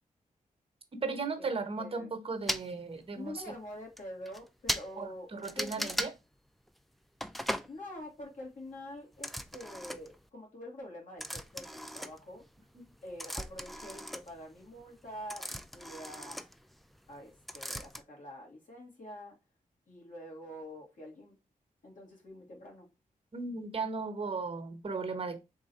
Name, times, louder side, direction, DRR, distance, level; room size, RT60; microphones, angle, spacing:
voice 1, 0.9-3.4 5.0-6.1 23.3-25.4, right 4 dB, 40° right, 0.9 m, -36 dB
voice 2, 1.8-2.1 3.1-5.3 5.6-5.9 7.7-12.4 13.0-16.5 17.1-19.4 19.9-21.4 21.8-22.9, left 1 dB, 65° left, 2.0 m, -46 dB
sound 1, 2.5-2.7 3.5-3.6 4.0-4.1 4.3-4.4 4.7-4.9 5.4-6.1 7.2-7.7 9.1-10.2 11.2-12.6 12.9-17.2 17.5-18.0, equal, ahead, 0.3 m, -38 dB
3.7 x 2.7 x 4.4 m
cardioid pair, 70°, 14 cm